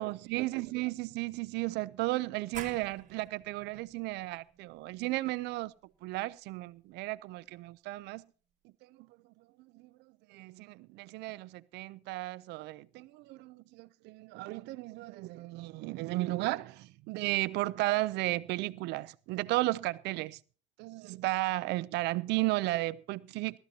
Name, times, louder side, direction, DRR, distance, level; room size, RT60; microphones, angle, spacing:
voice 1, 0.0-5.7 6.0-8.2 8.8-9.1 9.4-9.9 10.3-20.4 20.8-23.6, right 20 dB, 90° right, 0.6 m, -34 dB
sound 1, 2.5-7.9, right 8 dB, 45° right, 1.8 m, -51 dB
19.0 x 14.0 x 2.8 m
cardioid pair, 110°, 17 cm